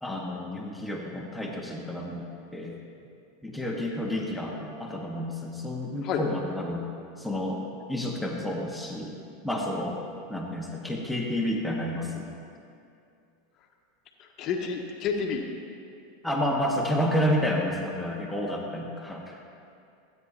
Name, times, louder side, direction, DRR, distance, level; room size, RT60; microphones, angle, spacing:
voice 1, 0.0-2.8 3.4-6.9 7.2-7.6 7.9-9.2 9.4-10.0 10.3-12.3 16.2-19.4, left 1 dB, 5° left, -2 dB, 1.3 m, -30 dB
voice 2, 14.2-15.5, left 6 dB, 45° left, 2 dB, 1.2 m, -30 dB
16.0 x 9.2 x 2.8 m, 2.5 s
hypercardioid pair, 100°, 0 cm